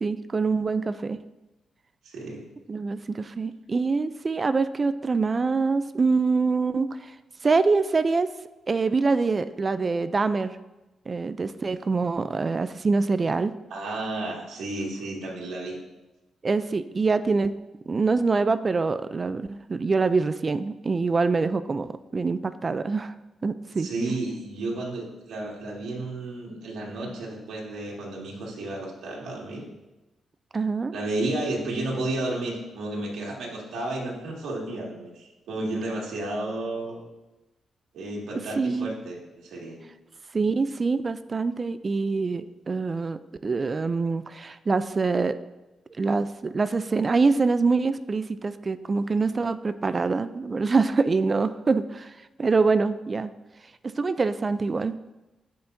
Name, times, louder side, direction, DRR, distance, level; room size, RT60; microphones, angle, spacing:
voice 1, 0.0-1.2 2.7-7.2 7.4-8.3 8.7-10.6 11.1-13.5 16.4-17.6 17.9-23.1 23.4-24.1 30.5-30.9 38.6-39.0 40.3-45.4 46.0-53.3 53.8-55.0, right 4 dB, 35° right, 13 dB, 0.4 m, -25 dB
voice 2, 2.0-2.4 13.7-15.8 23.8-29.7 30.9-37.0 37.9-39.8, right 2 dB, 85° right, -4 dB, 2.1 m, -32 dB
14.5 x 5.6 x 2.7 m, 1.0 s
cardioid pair, 80°, 0 cm